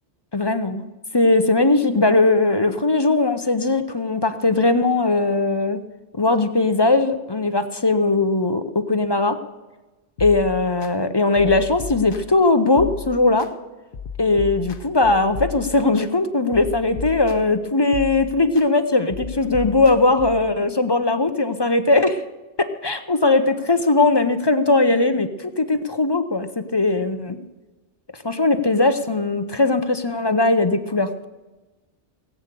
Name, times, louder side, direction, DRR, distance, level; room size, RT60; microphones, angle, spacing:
voice 1, 0.3-0.8 1.1-5.8 6.1-9.4 10.2-13.5 14.2-22.2 22.6-27.4 28.1-31.2, left 2 dB, 25° left, 9 dB, 0.6 m, -19 dB
sound 1, 10.2-10.9 11.4-12.4 12.8-13.5 13.9-16.1 16.5-17.6 17.9-18.7 19.1-20.5, left 6 dB, 55° left, 0.9 m, -34 dB
18.5 x 8.5 x 6.8 m, 1.1 s
omnidirectional pair, 1.2 m